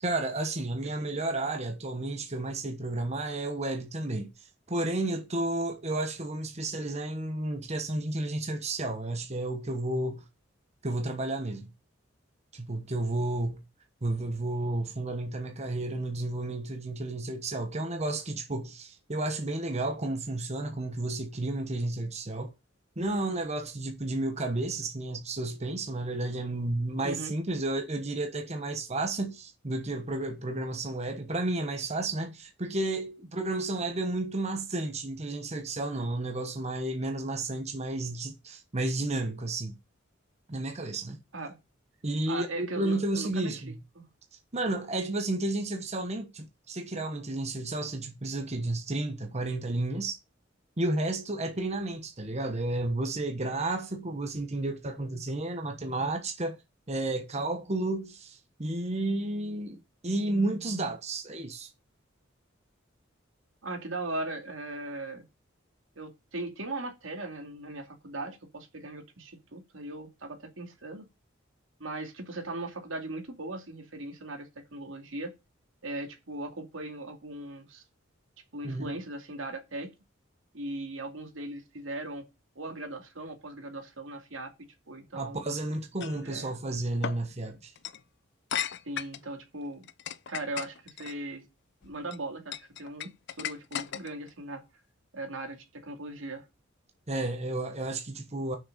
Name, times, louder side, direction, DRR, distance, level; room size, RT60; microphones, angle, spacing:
voice 1, 0.0-4.3 4.7-10.3 10.8-11.7 12.5-13.6 14.0-22.5 23.0-39.7 40.5-41.2 42.0-43.8 44.5-50.2 50.8-56.6 56.9-61.7 78.6-78.9 85.1-87.7 97.1-98.6, right 2 dB, 35° right, 1.2 m, -32 dB
voice 2, 42.3-43.6 44.0-44.1 63.6-65.2 66.0-71.1 71.8-75.3 75.8-77.8 78.5-79.9 80.5-82.2 82.6-85.4 86.2-86.5 88.8-89.9 90.3-91.4 91.8-93.1 93.4-94.6 95.1-96.4, right 2 dB, 80° right, 2.4 m, -38 dB
sound 1, 86.0-86.2 87.0-87.2 87.8-88.0 88.5-89.3 89.8-91.1 91.8-92.2 92.5-94.3, left 9 dB, 60° left, 0.6 m, -35 dB
6.4 x 6.4 x 6.6 m
head